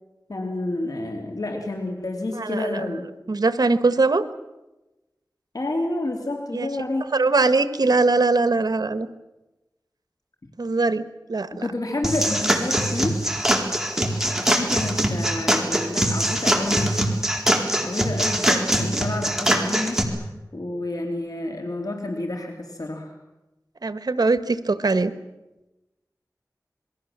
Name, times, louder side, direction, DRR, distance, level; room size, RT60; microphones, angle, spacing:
voice 1, 0.3-3.1 5.5-7.1 11.6-13.2 14.3-17.0 17.5-23.1, left 2 dB, 70° left, 3 dB, 3.1 m, -29 dB
voice 2, 2.3-2.8 3.3-4.2 6.5-6.7 7.1-9.1 10.6-11.7 23.8-25.1, right 3 dB, 80° right, 13 dB, 1.3 m, -21 dB
sound 1, 12.0-20.0, right 1 dB, 5° right, 4.1 m, -22 dB
27.5 x 22.0 x 7.4 m, 1.0 s
wide cardioid pair, 55°, 7 cm